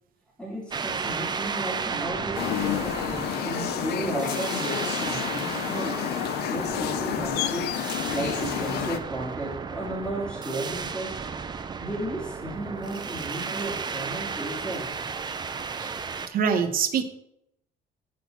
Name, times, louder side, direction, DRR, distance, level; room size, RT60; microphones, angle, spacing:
voice 1, 0.4-6.0 6.5-7.8 8.1-11.2 11.8-14.9, right 2 dB, 5° left, -4 dB, 2.3 m, -34 dB
sound 1, 0.7-16.3, right 5 dB, 25° right, 0.5 m, -34 dB
sound 2, 2.3-9.0, left 11 dB, 70° left, 0.6 m, -30 dB
voice 2, 16.3-17.0, right 7 dB, 60° right, 6 dB, 1.0 m, -24 dB
8.5 x 3.9 x 5.8 m, 0.79 s
cardioid pair, 110°, 17 cm